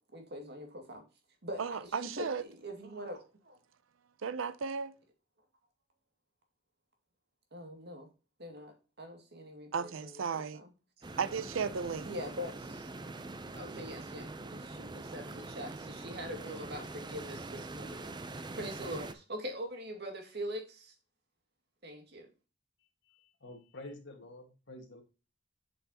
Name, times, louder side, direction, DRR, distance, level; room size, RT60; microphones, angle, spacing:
voice 1, 0.1-1.0 1.4-2.3 2.6-3.6 7.5-8.1 8.4-10.1 10.5-10.7 12.0-12.9 13.5-18.1 18.5-20.9 21.8-22.3, equal, 55° right, 2.2 m, -43 dB
voice 2, 1.6-2.4 4.2-4.9 9.7-10.6 11.2-12.1, right 6 dB, 85° right, 0.6 m, -35 dB
sound 1, 11.0-19.1, right 2 dB, 20° right, 0.6 m, -44 dB
voice 3, 23.1-25.0, left 2 dB, 65° left, 1.7 m, -49 dB
7.8 x 5.8 x 2.9 m
head